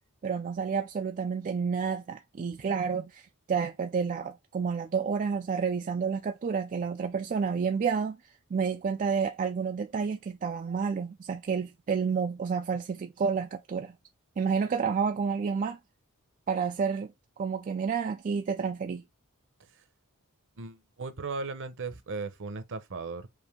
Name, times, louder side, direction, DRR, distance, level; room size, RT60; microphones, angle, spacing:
voice 1, 0.2-8.2 8.5-13.9 14.4-15.8 16.5-17.1 17.4-19.0, right 6 dB, 35° right, 0.3 m, -30 dB
voice 2, 20.6-23.3, right 4 dB, 60° right, 0.8 m, -37 dB
5.0 x 2.7 x 3.4 m
head